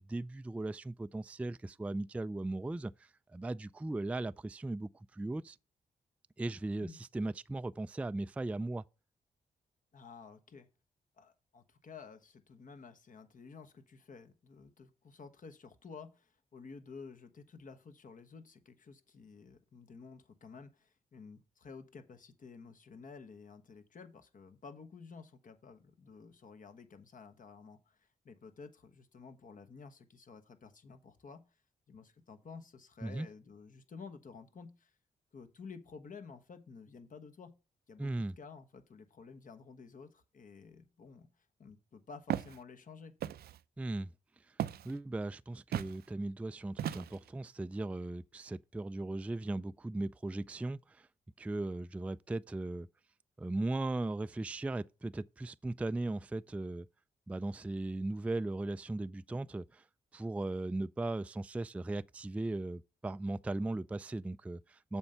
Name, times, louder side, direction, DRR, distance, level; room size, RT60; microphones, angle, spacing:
voice 1, 0.0-5.6 6.4-8.8 33.0-33.3 38.0-38.4 43.8-44.1 44.5-44.6 44.8-51.1 51.4-52.9 53.4-56.9 57.3-59.8 60.1-65.0, right 2 dB, 10° right, 0.3 m, -38 dB
voice 2, 9.9-10.7 11.2-31.4 31.9-34.9 35.3-37.5 37.9-41.3 41.6-43.1, left 5 dB, 55° left, 1.2 m, -52 dB
Walk footsteps, 42.3-42.6 43.2-43.6 44.6-44.9 45.7-46.0 46.8-47.3, right 11 dB, 70° right, 0.5 m, -36 dB
7.1 x 4.5 x 6.7 m
supercardioid pair, 50°, 16 cm